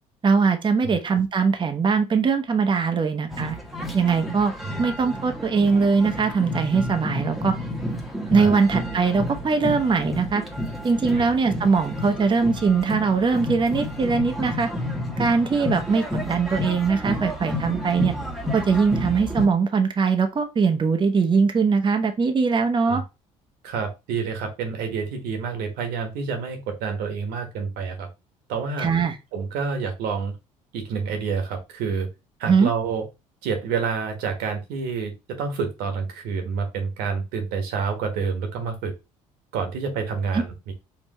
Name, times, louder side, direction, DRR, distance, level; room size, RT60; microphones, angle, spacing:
voice 1, 0.2-3.6 3.9-4.5 4.8-7.5 8.3-10.4 10.8-14.7 15.2-18.1 18.5-23.0 28.8-29.2 32.5-32.7 40.3-40.4, right 5 dB, 30° right, 6 dB, 0.8 m, -21 dB
sound 1, 3.3-19.5, equal, ahead, 1.2 m, -31 dB
voice 2, 23.6-28.1 28.5-28.9 29.3-30.3 30.7-32.1 32.4-33.0 33.4-38.9 39.5-40.7, right 5 dB, 70° right, 5 dB, 1.4 m, -28 dB
4.6 x 2.9 x 3.1 m, 0.25 s
hypercardioid pair, 60°, 17 cm